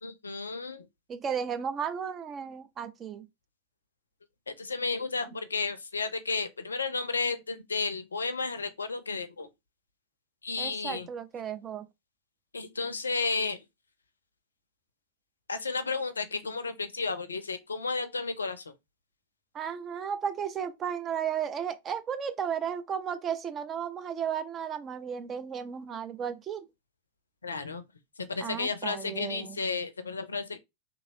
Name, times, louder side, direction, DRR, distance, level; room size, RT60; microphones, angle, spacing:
voice 1, 0.0-0.9 4.5-9.5 10.4-11.1 12.5-13.6 15.5-18.7 27.4-27.8 28.2-30.6, left 4 dB, 75° left, 0.5 m, -32 dB
voice 2, 1.1-3.3 10.6-11.8 19.5-26.7 28.4-29.6, right 7 dB, 25° right, 0.5 m, -34 dB
3.1 x 2.7 x 2.7 m
figure-of-eight pair, 90°, 0 cm